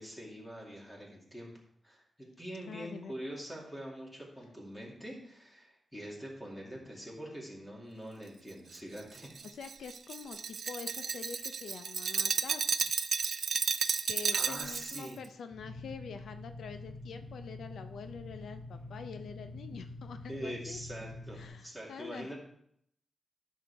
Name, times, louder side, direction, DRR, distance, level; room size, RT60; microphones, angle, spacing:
voice 1, 0.0-1.5 1.8-9.3 14.3-15.2 20.3-22.4, equal, 10° left, -2 dB, 2.3 m, -44 dB
voice 2, 2.7-3.1 9.5-12.9 14.1-20.8 21.3-22.3, left 6 dB, 85° left, 8 dB, 0.5 m, -46 dB
Glass, 8.7-15.1, right 6 dB, 60° right, 0.4 m, -33 dB
sound 1, 15.5-21.5, left 2 dB, 65° left, 2.8 m, -46 dB
12.5 x 6.5 x 3.4 m, 0.70 s
wide cardioid pair, 150°, 0 cm